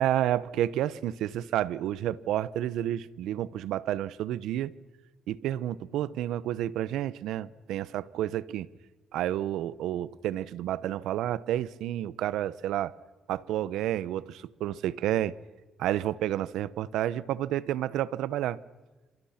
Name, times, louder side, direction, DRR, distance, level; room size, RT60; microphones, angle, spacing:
voice 1, 0.0-4.7 5.3-8.7 9.1-12.9 13.3-15.3 15.8-18.6, right 12 dB, 85° right, 0.9 m, -30 dB
28.0 x 27.0 x 5.9 m
cardioid pair, 90°, 0 cm